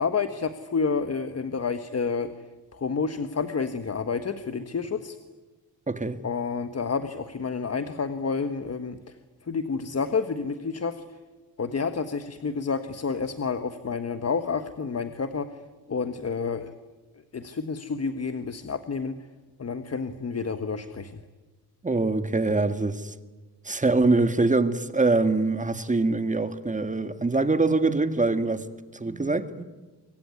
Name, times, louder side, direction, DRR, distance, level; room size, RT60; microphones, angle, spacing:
voice 1, 0.0-2.3 2.7-5.2 6.2-9.0 9.5-11.0 11.6-15.5 15.9-16.7 17.3-19.2 19.6-21.2, left 5 dB, 40° left, 1.5 m, -29 dB
voice 2, 5.9-6.2 21.8-23.2 23.6-28.7 28.9-29.6, right 3 dB, 20° right, 1.9 m, -24 dB
25.5 x 23.5 x 9.6 m
cardioid pair, 95°, 38 cm